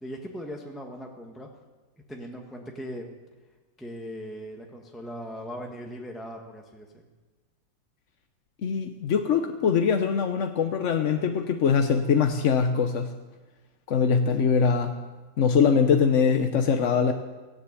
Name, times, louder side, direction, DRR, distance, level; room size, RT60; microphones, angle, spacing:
voice 1, 0.0-1.5 2.1-3.1 3.8-7.0, equal, ahead, 1 dB, 1.3 m, -39 dB
voice 2, 8.6-13.1 13.9-15.0 15.4-17.1, left 6 dB, 55° left, 6 dB, 0.8 m, -22 dB
16.0 x 10.0 x 8.4 m, 1.2 s
omnidirectional pair, 2.1 m